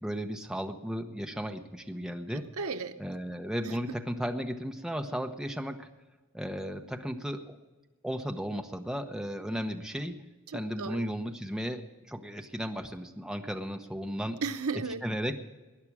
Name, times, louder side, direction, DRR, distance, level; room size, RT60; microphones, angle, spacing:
voice 1, 0.0-2.5 3.0-5.9 6.3-7.6 8.0-10.2 10.5-14.4 15.0-15.4, equal, 5° right, 4 dB, 1.0 m, -35 dB
voice 2, 2.3-3.0 3.6-3.8 10.5-11.1 14.4-15.0, right 4 dB, 80° right, 9 dB, 0.8 m, -35 dB
19.5 x 10.5 x 4.9 m, 1.2 s
head